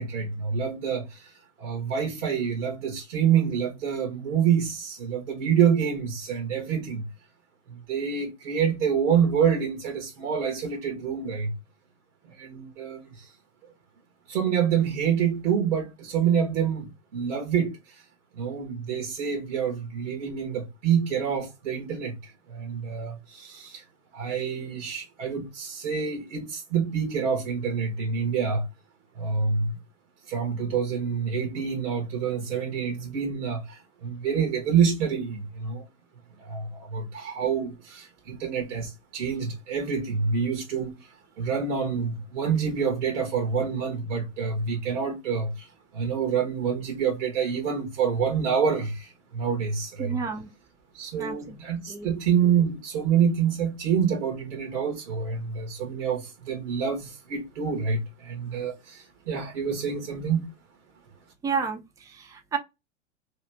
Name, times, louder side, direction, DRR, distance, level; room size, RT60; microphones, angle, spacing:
voice 1, 0.0-1.3 1.6-7.1 7.7-11.5 12.2-13.3 14.3-18.0 18.3-23.8 24.1-28.7 29.1-29.8 30.3-35.9 36.4-45.7 45.9-50.2 50.9-60.5, right 7 dB, 75° right, 1.1 m, -27 dB
voice 2, 50.0-50.5 51.2-51.4 51.9-52.1 61.4-62.6, right 5 dB, 10° right, 0.5 m, -31 dB
2.9 x 2.4 x 3.3 m
hypercardioid pair, 105°, 36 cm